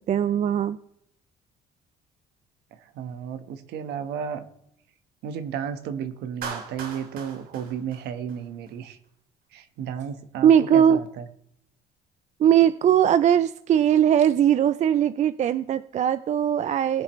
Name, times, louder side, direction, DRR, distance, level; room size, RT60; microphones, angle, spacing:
voice 1, 0.1-0.8 10.4-11.0 12.4-17.0, right 9 dB, 45° right, 14 dB, 0.5 m, -20 dB
voice 2, 2.7-4.4 5.2-9.0 9.5-11.3, right 8 dB, 80° right, 9 dB, 1.3 m, -33 dB
Clapping, 6.4-8.7, right 5 dB, 65° right, 2.5 m, -38 dB
20.5 x 7.5 x 3.1 m, 0.76 s
cardioid pair, 110°, 17 cm